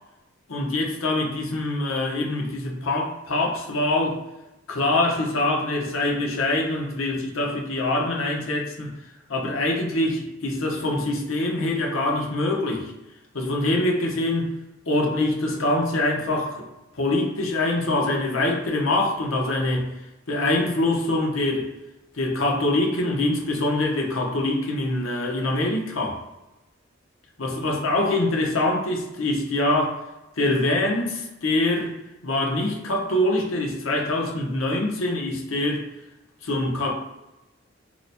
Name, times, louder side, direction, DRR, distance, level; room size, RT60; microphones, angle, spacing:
voice 1, 0.5-4.2 4.7-8.9 9.3-12.9 13.3-14.5 14.9-16.7 16.9-19.9 20.3-21.7 22.1-26.2 27.4-30.0 30.4-31.9 32.2-35.9 36.4-36.9, left 2 dB, 90° left, 0 dB, 0.9 m, -24 dB
2.9 x 2.1 x 4.1 m, 0.97 s
head